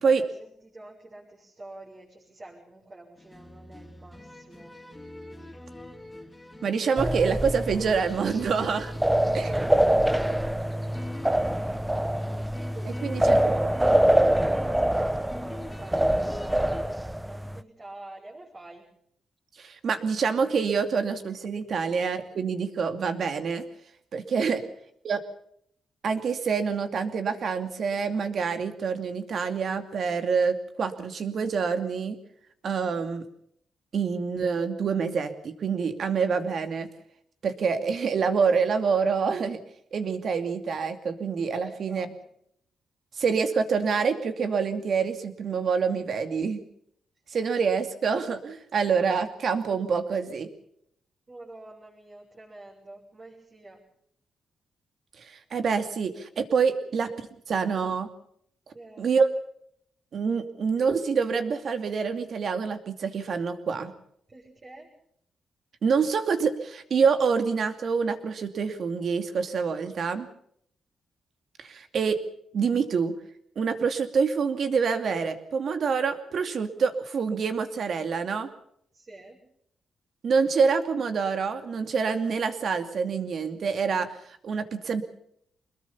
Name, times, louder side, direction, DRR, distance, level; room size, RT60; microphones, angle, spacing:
voice 1, 0.1-4.8 5.3-5.7 9.4-10.7 11.5-11.7 12.6-18.9 24.5-24.7 41.6-42.4 51.3-53.8 56.8-56.9 58.7-59.1 64.3-64.9 78.9-79.4, right 2 dB, 30° right, -5 dB, 7.0 m, -47 dB
sound 1, 3.2-16.8, left 2 dB, 15° left, 3.1 m, -44 dB
voice 2, 6.6-8.9 9.3-9.5 13.0-13.6 19.6-23.6 24.1-24.6 25.0-25.2 26.0-32.2 32.6-33.3 33.9-36.9 37.4-39.6 39.9-42.1 43.2-46.6 47.3-50.5 55.2-57.1 57.5-58.1 59.0-59.3 60.1-63.9 65.8-70.3 71.6-72.2 72.5-73.1 73.6-78.5 80.2-84.1 84.4-85.0, right 5 dB, 55° right, 8 dB, 2.5 m, -26 dB
sound 2, 7.0-17.6, right 1 dB, 5° right, 0.8 m, -25 dB
25.5 x 21.5 x 5.7 m, 0.70 s
cardioid pair, 115°, 0 cm